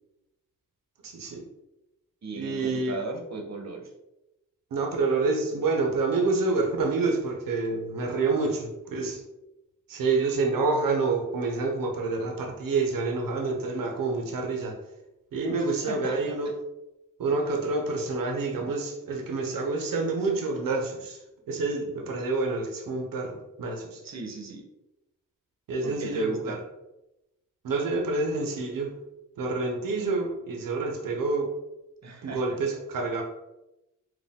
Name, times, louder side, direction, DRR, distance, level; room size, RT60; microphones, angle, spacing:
voice 1, 1.0-1.5 2.3-3.0 4.7-9.2 9.9-14.8 15.3-16.5 17.2-21.2 21.5-24.0 25.7-26.6 27.6-28.9 29.4-31.5 32.2-33.2, right 3 dB, 85° right, 2 dB, 0.9 m, -28 dB
voice 2, 2.2-3.9 15.5-16.2 24.0-24.6 25.8-26.6 32.0-32.4, right 3 dB, 55° right, 2 dB, 1.0 m, -37 dB
4.2 x 2.5 x 3.6 m, 0.91 s
cardioid pair, 60°, 33 cm